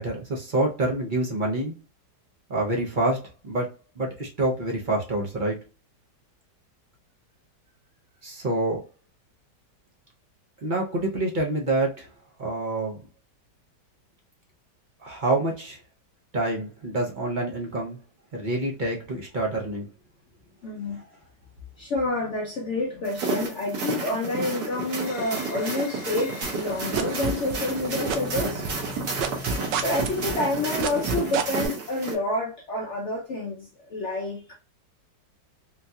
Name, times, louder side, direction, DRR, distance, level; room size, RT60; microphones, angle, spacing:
voice 1, 0.0-1.7 2.5-3.7 4.0-5.6 8.2-8.8 10.6-12.1 12.4-13.0 15.0-15.8 16.3-18.0 18.3-19.9, right 2 dB, 55° right, 0.5 m, -27 dB
voice 2, 20.6-21.0 21.8-28.8 29.8-34.5, left 2 dB, 65° left, 0.7 m, -29 dB
sound 1, 23.0-32.1, right 4 dB, 70° right, 1.6 m, -31 dB
sound 2, 24.9-31.5, left 4 dB, 80° left, 1.3 m, -42 dB
sound 3, 26.4-27.8 28.1-31.7, right 7 dB, 85° right, 1.2 m, -27 dB
3.8 x 2.7 x 2.3 m
omnidirectional pair, 1.9 m